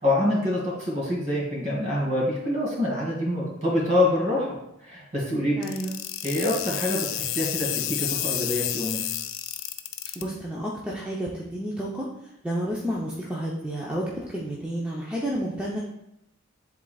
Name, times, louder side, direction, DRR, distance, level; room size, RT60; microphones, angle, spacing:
voice 1, 0.0-4.6 4.8-5.5 6.2-9.0, left 1 dB, 35° right, -4 dB, 2.2 m, -26 dB
sound 1, 5.6-10.2, left 12 dB, 80° left, 0.5 m, -30 dB
voice 2, 5.6-5.9 10.2-12.1 12.4-15.8, right 1 dB, 5° right, -5 dB, 0.6 m, -30 dB
10.5 x 3.8 x 2.3 m, 0.82 s
head